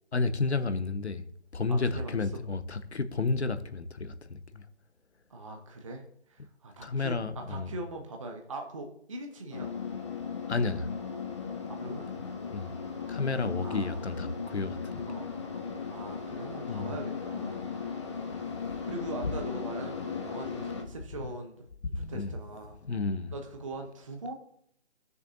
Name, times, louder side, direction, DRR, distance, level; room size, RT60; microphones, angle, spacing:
voice 1, 0.1-1.2 1.5-4.6 6.8-7.8 10.5-10.9 12.5-12.7 13.1-15.0 16.7-17.0 18.7-18.8 21.2-21.3 21.8-22.3 22.8-23.3, left 3 dB, 75° left, 1.1 m, -31 dB
voice 2, 1.7-2.2 5.3-9.7 11.7-12.3 13.6-14.1 15.1-15.3 15.9-17.8 18.9-21.6 21.9-22.8 23.3-24.3, right 2 dB, 30° right, 0.9 m, -41 dB
sound 1, 9.5-20.8, left 6 dB, 25° left, 1.0 m, -37 dB
15.0 x 6.7 x 2.7 m
figure-of-eight pair, 155°, 34 cm